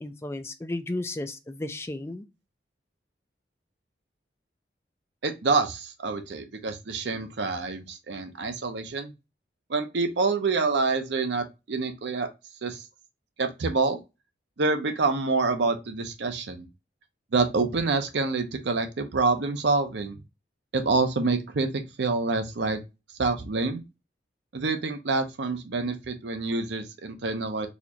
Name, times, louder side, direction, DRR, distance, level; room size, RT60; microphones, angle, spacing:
voice 1, 0.0-2.2, left 2 dB, 15° left, 0.3 m, -34 dB
voice 2, 5.2-9.1 9.7-12.3 12.6-12.8 13.4-14.0 14.6-16.7 17.3-20.2 20.7-22.8 23.2-23.8 24.5-27.7, right 3 dB, 70° right, 0.6 m, -27 dB
4.2 x 2.5 x 2.8 m
head